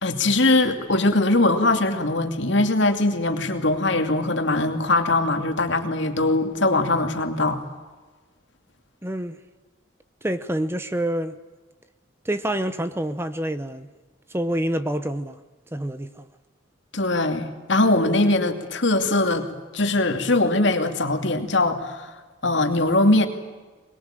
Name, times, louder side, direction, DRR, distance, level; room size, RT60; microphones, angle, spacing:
voice 1, 0.0-7.6 16.9-19.5 19.7-22.1 22.4-23.3, left 2 dB, 60° left, 2.6 m, -21 dB
voice 2, 9.0-9.4 10.2-11.4 12.2-13.9 14.3-15.4 15.7-16.3, right 1 dB, 10° right, 0.8 m, -27 dB
23.0 x 21.5 x 9.0 m
head